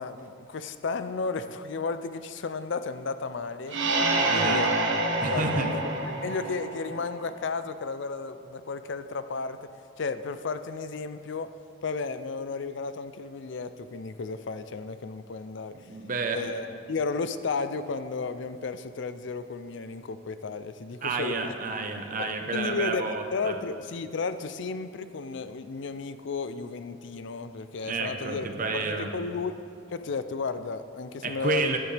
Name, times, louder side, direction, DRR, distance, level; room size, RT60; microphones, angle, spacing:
voice 1, 0.0-3.8 4.2-4.7 5.1-9.7 10.0-11.6 11.8-15.9 16.3-21.5 22.2-28.5 28.7-29.6 29.9-31.8, left 4 dB, 70° left, 12 dB, 0.5 m, -33 dB
sound 1, 3.7-7.3, right 2 dB, 75° right, 1.3 m, -27 dB
voice 2, 4.3-4.6 5.2-5.7 15.7-16.4 21.0-23.6 27.8-29.1 31.2-31.8, right 3 dB, 45° right, 4 dB, 1.0 m, -30 dB
15.0 x 11.0 x 3.4 m, 2.5 s
head